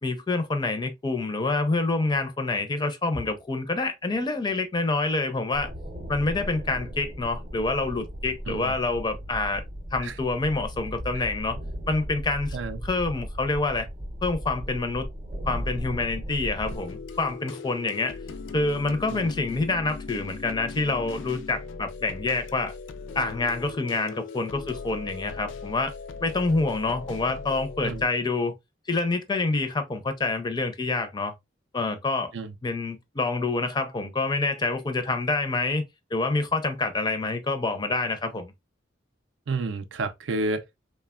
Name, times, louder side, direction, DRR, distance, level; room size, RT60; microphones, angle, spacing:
voice 1, 0.0-5.7 6.1-9.6 9.9-11.6 11.9-12.6 12.8-13.9 14.2-15.1 15.5-18.2 18.5-22.7 23.2-25.9 26.2-28.5 28.9-31.3 31.7-32.3 32.6-35.8 36.1-38.5, left 3 dB, 25° left, 0.4 m, -27 dB
sound 1, 5.5-16.8, equal, 35° right, 0.6 m, -36 dB
sound 2, 16.6-28.1, left 4 dB, 90° left, 0.4 m, -39 dB
voice 2, 39.5-40.6, right 3 dB, 85° right, 0.4 m, -30 dB
3.1 x 2.1 x 2.3 m
head